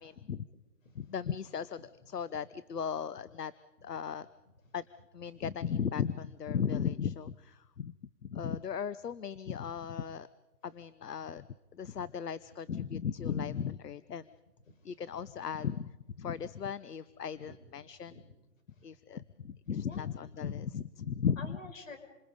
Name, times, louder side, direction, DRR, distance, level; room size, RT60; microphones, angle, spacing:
voice 1, 0.0-0.5 0.9-3.5 3.8-4.3 4.7-4.9 5.1-7.9 8.2-10.3 10.6-11.5 11.7-14.3 14.8-18.1 18.8-21.6, left 7 dB, 75° left, 16 dB, 1.0 m, -36 dB
voice 2, 0.5-1.2 14.7-14.8 16.4-16.5 17.5-17.6 18.0-18.3 18.7-18.8 19.8-20.1 21.4-22.0, left 3 dB, 50° left, 5 dB, 5.9 m, -50 dB
28.5 x 26.0 x 5.3 m, 1.1 s
hypercardioid pair, 165°, 48 cm